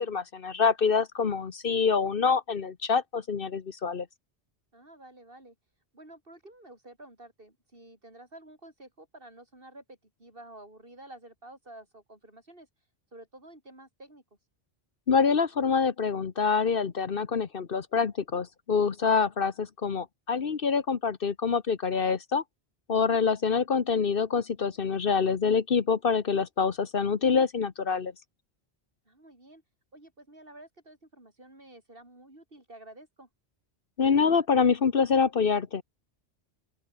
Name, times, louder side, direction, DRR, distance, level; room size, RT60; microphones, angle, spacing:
voice 1, 0.0-4.1 15.1-22.4 22.9-28.1 34.0-35.8, left 5 dB, 55° left, 1.2 m, -26 dB
voice 2, 4.7-5.6 5.9-12.7 13.1-14.2 29.1-29.6 29.9-33.3, right 1 dB, 55° right, 6.1 m, -50 dB
open air
omnidirectional pair, 1.1 m